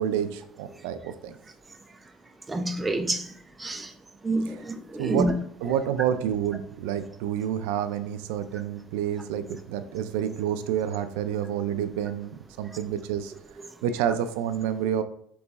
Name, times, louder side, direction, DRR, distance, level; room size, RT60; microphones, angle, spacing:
voice 1, 0.0-1.4 4.5-4.6 5.0-5.3 5.6-13.3 13.8-15.0, right 9 dB, 85° right, 0.3 m, -29 dB
voice 2, 2.5-3.3 3.6-3.9 4.2-5.3, right 2 dB, 10° right, 0.4 m, -27 dB
4.0 x 3.0 x 3.5 m
cardioid pair, 140°, 0 cm